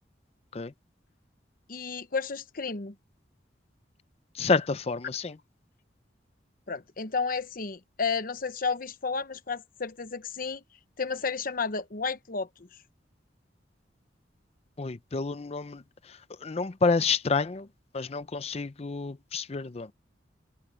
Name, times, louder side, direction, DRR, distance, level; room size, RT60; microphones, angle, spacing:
voice 1, 1.7-2.9 6.7-10.6 11.0-12.5, left 5 dB, 50° left, 1.0 m, -32 dB
voice 2, 4.3-5.4 14.8-17.7 17.9-19.9, left 4 dB, 35° left, 0.5 m, -29 dB
head